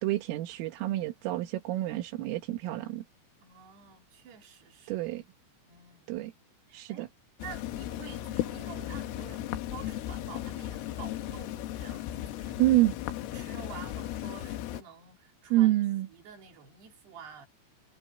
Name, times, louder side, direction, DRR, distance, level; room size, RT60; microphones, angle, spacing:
voice 1, 0.0-3.0 4.9-5.2 6.1-6.3 6.7-7.1 12.6-13.0 15.5-16.1, right 16 dB, 85° right, 4.0 m, -27 dB
voice 2, 3.4-5.0 5.7-6.2 6.7-7.1 7.4-12.6 13.3-15.8 16.1-17.5, right 7 dB, 55° right, 5.0 m, -49 dB
sound 1, 7.4-14.8, left 13 dB, 85° left, 4.0 m, -36 dB
omnidirectional pair, 5.8 m